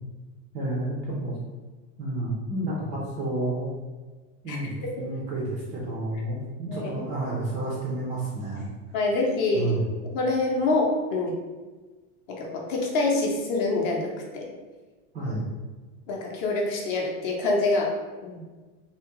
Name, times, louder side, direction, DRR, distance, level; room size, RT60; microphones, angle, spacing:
voice 1, 0.5-1.3 2.0-3.7 4.4-8.7 9.5-9.8 15.1-15.5, right 2 dB, 20° right, -5 dB, 0.3 m, -30 dB
voice 2, 8.9-9.8 10.1-11.4 12.3-14.5 16.1-17.9 18.2-18.4, left 2 dB, 40° left, -1 dB, 0.6 m, -26 dB
3.3 x 2.7 x 2.9 m, 1.3 s
supercardioid pair, 170°, 37 cm